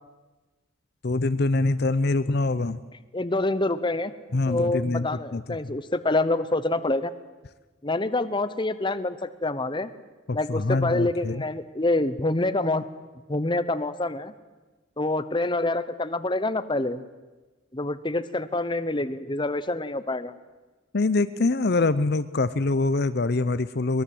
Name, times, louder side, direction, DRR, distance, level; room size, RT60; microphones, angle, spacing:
voice 1, 1.0-2.8 4.3-5.7 10.3-11.4 20.9-24.0, left 3 dB, 55° left, 13 dB, 0.6 m, -24 dB
voice 2, 3.1-4.1 4.5-7.1 7.8-9.9 10.3-12.8 13.3-14.3 15.0-17.0 17.7-20.3, left 2 dB, 25° left, 13 dB, 0.9 m, -26 dB
23.5 x 21.0 x 7.9 m, 1.2 s
head